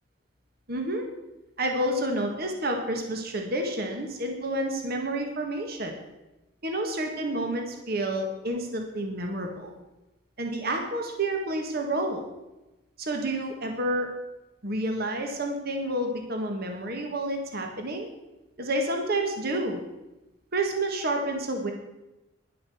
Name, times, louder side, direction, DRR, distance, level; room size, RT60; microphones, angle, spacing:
voice 1, 0.7-1.1 1.6-6.0 6.6-9.7 10.4-12.2 13.0-14.1 14.6-18.1 18.6-19.8 20.5-21.7, right 1 dB, 50° right, 3 dB, 1.7 m, -29 dB
11.0 x 8.6 x 7.0 m, 1.0 s
head